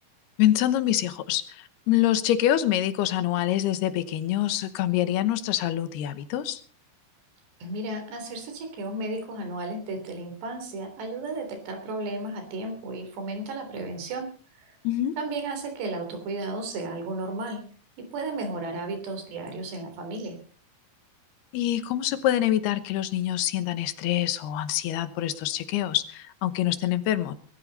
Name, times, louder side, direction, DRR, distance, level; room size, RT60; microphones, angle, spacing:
voice 1, 0.4-6.6 14.8-15.2 21.5-27.3, left 12 dB, 75° left, 13 dB, 3.0 m, -25 dB
voice 2, 7.6-14.3 14.6-14.8 15.2-17.6 18.0-20.4, right 2 dB, 85° right, 5 dB, 5.6 m, -34 dB
23.0 x 13.5 x 4.1 m, 0.42 s
omnidirectional pair, 4.8 m